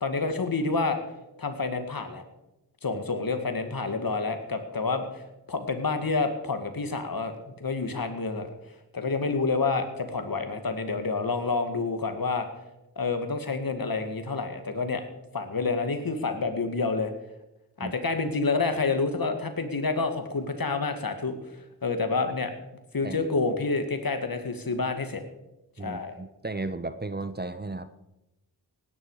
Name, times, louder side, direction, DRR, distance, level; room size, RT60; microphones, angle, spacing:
voice 1, 0.0-1.0 1.4-2.2 2.8-5.2 5.5-8.5 8.9-12.5 13.0-15.0 15.3-17.1 17.8-22.5 22.9-25.2 25.8-26.1, left 4 dB, 55° left, 7 dB, 2.1 m, -28 dB
voice 2, 25.8-28.0, right 2 dB, 25° right, 12 dB, 0.9 m, -35 dB
17.5 x 10.5 x 4.9 m, 0.94 s
cardioid pair, 40°, 41 cm